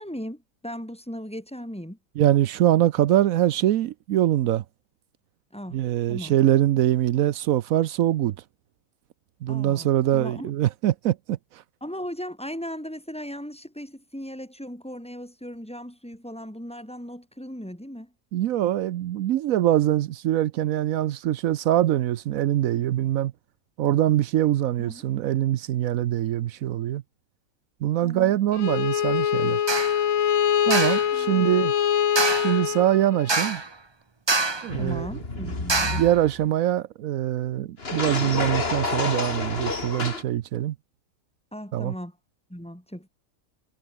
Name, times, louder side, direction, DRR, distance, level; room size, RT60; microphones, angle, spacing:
voice 1, 0.0-2.0 5.5-5.8 6.1-6.3 9.5-10.5 11.8-18.1 24.8-25.0 28.0-28.3 31.1-31.5 34.8-36.1 41.5-42.2 42.5-43.1, equal, 5° left, 6.6 m, -37 dB
voice 2, 2.2-4.6 5.7-8.4 9.4-11.4 18.3-23.3 23.8-27.0 27.8-29.6 30.7-31.7 32.4-33.6 34.6-35.1 35.8-40.7 41.7-41.9, right 12 dB, 85° right, 1.1 m, -23 dB
Bowed string instrument, 28.5-33.5, left 9 dB, 75° left, 1.4 m, -24 dB
sound 1, 29.7-30.0 30.7-31.1 32.2-32.6 33.3-33.7 34.3-34.7 35.7-36.1, right 3 dB, 20° right, 1.0 m, -25 dB
sound 2, 34.7-36.4 37.8-40.2, left 3 dB, 45° left, 2.7 m, -29 dB
omnidirectional pair, 1.4 m